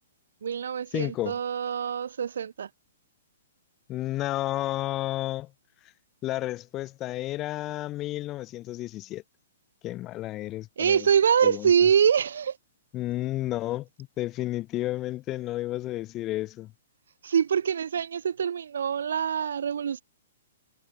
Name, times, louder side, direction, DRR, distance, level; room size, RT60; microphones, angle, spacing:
voice 1, 0.4-2.7 10.8-12.6 17.2-20.0, right 7 dB, 70° right, 1.0 m, -24 dB
voice 2, 0.9-1.4 3.9-5.5 6.2-9.2 9.8-11.1 11.4-11.7 12.9-16.7, left 16 dB, 30° left, 1.0 m, -31 dB
figure-of-eight pair, 115°, 0 cm